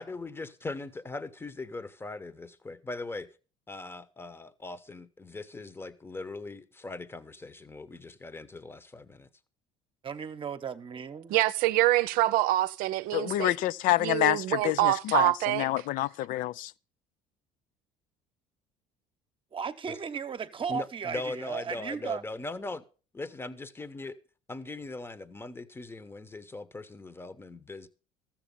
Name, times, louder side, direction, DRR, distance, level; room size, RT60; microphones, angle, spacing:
voice 1, 0.0-3.3 3.7-9.3 20.7-22.8 23.1-24.2 24.5-27.9, left 2 dB, 15° left, 1.0 m, -40 dB
voice 2, 10.0-11.4 19.5-22.2, right 6 dB, 35° right, 1.0 m, -35 dB
voice 3, 11.3-13.5 14.0-15.7, right 16 dB, 70° right, 0.6 m, -25 dB
voice 4, 13.1-16.7, left 15 dB, 60° left, 0.5 m, -28 dB
13.5 x 7.4 x 5.4 m
supercardioid pair, 75°, 15 cm